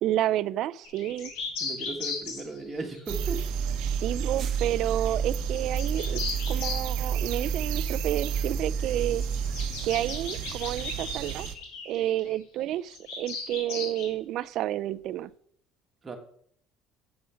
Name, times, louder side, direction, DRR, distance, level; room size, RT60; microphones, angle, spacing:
voice 1, 0.0-1.3 4.0-6.2 6.5-9.2 9.8-11.5 11.9-15.3, right 13 dB, 60° right, 15 dB, 0.3 m, -30 dB
sound 1, 0.8-3.8 5.5-6.8 8.8-12.4 12.9-14.1, left 4 dB, 85° left, 2.5 m, -36 dB
voice 2, 1.6-3.4 16.0-16.2, right 3 dB, 20° right, 3 dB, 1.5 m, -36 dB
sound 2, 3.1-9.7, right 6 dB, 40° right, 0.9 m, -30 dB
sound 3, 3.1-11.5, right 10 dB, 75° right, 0.7 m, -36 dB
7.6 x 5.5 x 5.6 m, 0.63 s
cardioid pair, 140°, 0 cm